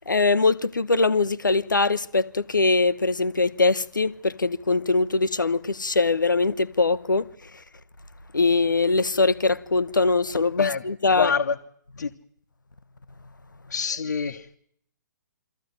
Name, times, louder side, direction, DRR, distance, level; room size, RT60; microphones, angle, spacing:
voice 1, 0.0-7.3 8.3-11.3, left 3 dB, 85° left, 0.9 m, -22 dB
voice 2, 11.1-11.5 12.0-12.1 13.7-14.6, left 6 dB, 65° left, 1.2 m, -25 dB
23.5 x 14.5 x 9.3 m
figure-of-eight pair, 130°, 10 cm